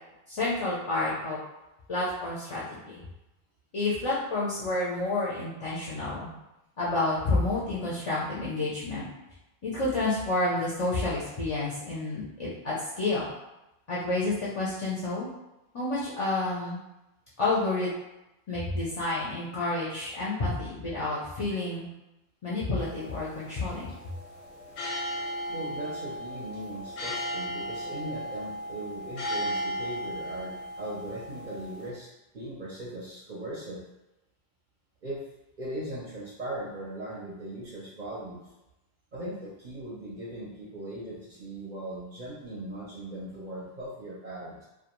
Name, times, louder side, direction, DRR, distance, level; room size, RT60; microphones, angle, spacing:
voice 1, 0.3-1.4 1.9-2.9 3.7-6.3 6.8-9.1 9.6-13.3 13.9-15.3 15.7-16.8 17.4-17.9 18.5-21.9 22.4-23.9, left 2 dB, 45° left, -7 dB, 0.4 m, -29 dB
sound 1, 22.8-31.9, equal, 85° left, 0.9 m, -36 dB
voice 2, 25.5-32.1 32.3-33.8 35.0-35.2 35.6-38.4 39.1-44.6, right 1 dB, 55° right, -6 dB, 0.7 m, -39 dB
2.3 x 2.2 x 2.9 m, 0.94 s
omnidirectional pair, 1.1 m